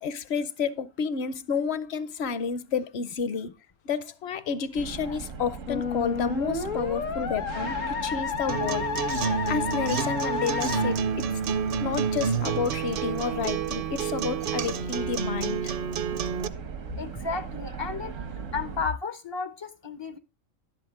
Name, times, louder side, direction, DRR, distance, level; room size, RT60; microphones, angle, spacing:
voice 1, 0.0-3.5 3.8-9.2 9.5-11.3 11.8-15.8, left 6 dB, 60° left, 0.9 m, -30 dB
sound 1, 4.8-18.9, right 6 dB, 75° right, 1.4 m, -39 dB
Musical instrument, 5.7-10.9, left 7 dB, 75° left, 1.6 m, -31 dB
Acoustic guitar, 8.5-16.5, right 7 dB, 55° right, 0.7 m, -29 dB
voice 2, 17.0-18.1 18.5-20.2, left 5 dB, 40° left, 0.4 m, -33 dB
11.0 x 7.9 x 3.5 m
omnidirectional pair, 1.3 m